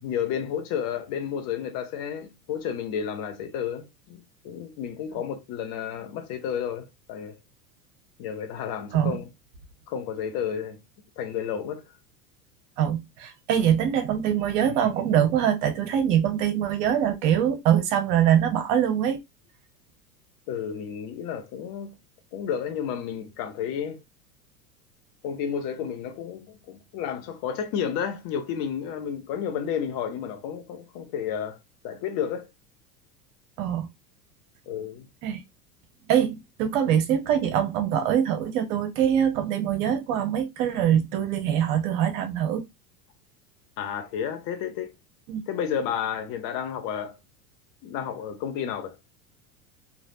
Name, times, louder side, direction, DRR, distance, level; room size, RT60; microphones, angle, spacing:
voice 1, 0.0-7.4 8.2-9.2 9.9-10.8 11.2-11.8 20.5-22.0 22.3-24.0 25.2-31.6 31.8-32.5 34.7-35.1 43.8-44.9 45.5-47.2 47.8-49.0, left 8 dB, 45° left, 0.8 m, -31 dB
voice 2, 12.8-19.2 33.6-33.9 35.2-35.4 36.1-42.6 45.3-45.4, right 9 dB, 50° right, 0.9 m, -23 dB
3.3 x 2.4 x 2.6 m
hypercardioid pair, 85°, 48 cm